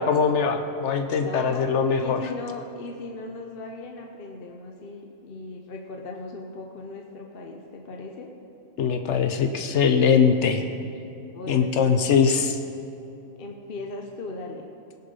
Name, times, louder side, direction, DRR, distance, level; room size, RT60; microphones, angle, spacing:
voice 1, 0.0-2.2 8.8-10.6 11.5-12.6, left 6 dB, 75° left, 7 dB, 1.0 m, -21 dB
voice 2, 1.2-8.3 11.3-12.2 13.4-14.6, left 3 dB, 55° left, 2 dB, 1.0 m, -38 dB
19.0 x 6.8 x 5.3 m, 2.9 s
omnidirectional pair, 1.2 m